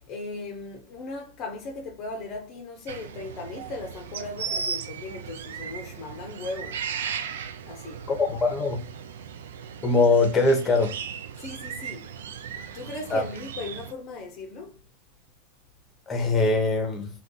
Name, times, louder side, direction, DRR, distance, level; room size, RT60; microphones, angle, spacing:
voice 1, 0.1-6.8 7.6-8.0 11.4-12.1 12.7-14.8, left 3 dB, 45° left, 0.6 m, -37 dB
sound 1, 2.9-13.9, right 7 dB, 80° right, 0.3 m, -36 dB
voice 2, 8.1-8.8 9.8-10.9 13.1-13.2 16.1-17.1, left 3 dB, 20° left, 0.8 m, -22 dB
2.5 x 2.3 x 3.7 m
hypercardioid pair, 110°, 0 cm